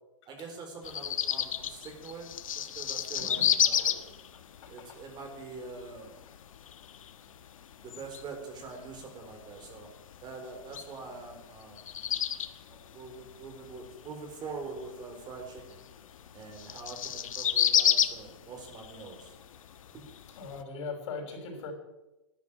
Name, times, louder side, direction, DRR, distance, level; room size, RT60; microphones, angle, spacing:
voice 1, 0.3-2.3 2.5-3.9 4.7-6.1 7.8-9.9 10.2-11.9 12.7-15.8 16.3-19.3 19.9-20.0, right 4 dB, 25° right, 3 dB, 4.1 m, -44 dB
sound 1, 0.8-20.6, left 9 dB, 90° left, 1.3 m, -33 dB
voice 2, 3.2-4.1 4.6-5.0 16.6-16.7 20.4-21.7, left 4 dB, 60° left, 2 dB, 6.2 m, -41 dB
13.5 x 10.5 x 8.8 m, 1.0 s
hypercardioid pair, 145°, 17 cm